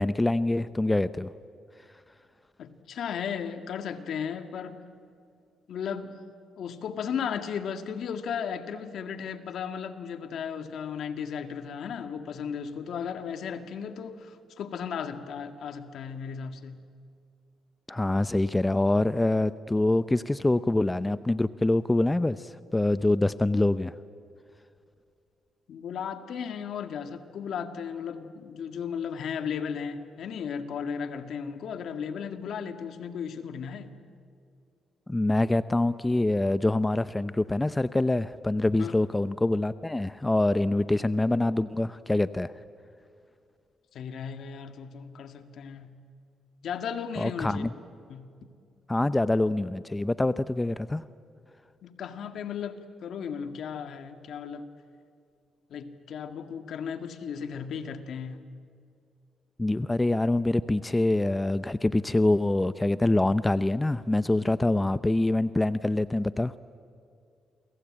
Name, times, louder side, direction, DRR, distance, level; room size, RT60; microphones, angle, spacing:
voice 1, 0.0-1.3 17.9-23.9 35.1-42.5 47.2-47.7 48.9-51.0 59.6-66.5, left 2 dB, 15° left, 14 dB, 0.6 m, -25 dB
voice 2, 2.6-4.9 5.7-6.2 6.6-16.8 25.7-34.0 38.8-38.9 43.9-45.9 46.6-47.7 48.1-48.3 51.8-54.7 55.7-58.4, left 7 dB, 70° left, 8 dB, 1.9 m, -35 dB
28.5 x 22.5 x 8.9 m, 2.4 s
cardioid pair, 90°, 0 cm